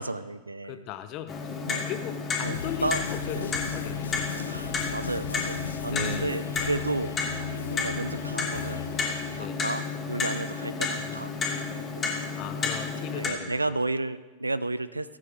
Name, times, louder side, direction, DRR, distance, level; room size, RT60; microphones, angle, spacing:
voice 1, 0.0-0.9 1.7-1.8 2.4-3.0 3.3-3.5 4.5-11.4 12.0-12.2 12.6-12.7 13.0-15.2, right 2 dB, 80° right, 16 dB, 0.5 m, -33 dB
voice 2, 0.6-4.9 5.9-6.6 9.3-9.6 12.4-13.7, left 11 dB, 40° left, 10 dB, 0.9 m, -39 dB
Clock, 1.3-13.3, left 4 dB, 20° left, 2.6 m, -32 dB
sound 1, 2.4-9.4, left 7 dB, 70° left, 0.4 m, -38 dB
17.0 x 9.2 x 4.6 m, 1.3 s
figure-of-eight pair, 90°, 0 cm